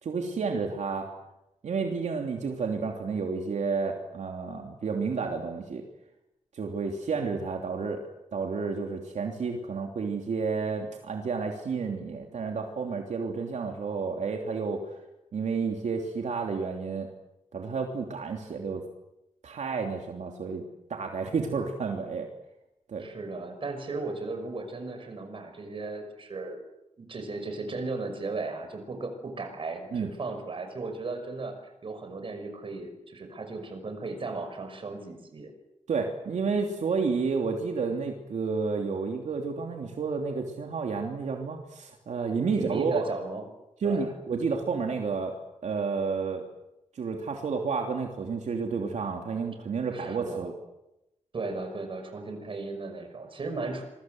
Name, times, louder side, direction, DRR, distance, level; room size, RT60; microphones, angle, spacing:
voice 1, 0.0-1.1 1.6-5.8 6.5-8.0 8.3-14.8 15.3-17.1 17.5-18.8 19.4-20.6 20.9-22.3 22.9-23.1 29.9-30.1 35.9-43.1 43.8-45.4 45.6-46.4 46.9-50.5, right 5 dB, 80° right, 2 dB, 3.1 m, -30 dB
voice 2, 23.0-26.6 27.0-31.5 31.8-35.5 42.5-43.4 43.8-44.1 49.9-50.5 51.3-53.9, right 3 dB, 45° right, 6 dB, 5.7 m, -36 dB
27.0 x 23.0 x 7.9 m, 0.91 s
wide cardioid pair, 160°, 12 cm